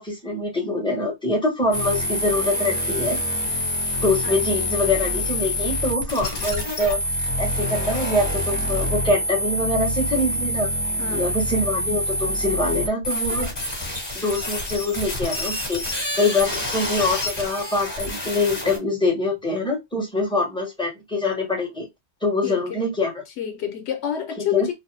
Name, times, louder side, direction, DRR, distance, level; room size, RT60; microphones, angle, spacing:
voice 1, 0.0-3.2 4.0-7.0 7.4-10.7 11.1-13.5 14.1-15.8 16.1-21.9 22.2-23.1 24.4-24.7, left 2 dB, 5° left, 1.0 m, -24 dB
sound 1, 1.7-18.8, left 1 dB, 25° left, 1.2 m, -26 dB
voice 2, 11.0-11.3 22.4-22.9 23.4-24.7, left 10 dB, 90° left, 0.9 m, -28 dB
2.9 x 2.0 x 3.1 m
omnidirectional pair, 1.1 m